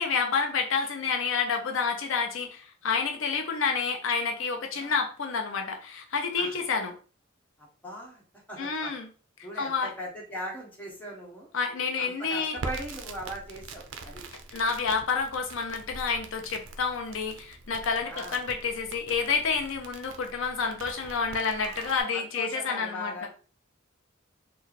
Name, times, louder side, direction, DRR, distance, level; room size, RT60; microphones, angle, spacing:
voice 1, 0.0-6.9 8.6-9.1 9.6-9.9 11.5-12.6 14.5-23.3, left 5 dB, 75° left, 3 dB, 0.5 m, -29 dB
voice 2, 7.6-8.2 8.5-8.9 9.4-11.5 12.0-14.2 18.1-18.3 22.1-23.3, equal, 10° left, -4 dB, 1.2 m, -39 dB
Crackle, 12.5-22.0, right 3 dB, 70° right, 0.5 m, -43 dB
3.1 x 2.2 x 4.0 m, 0.38 s
head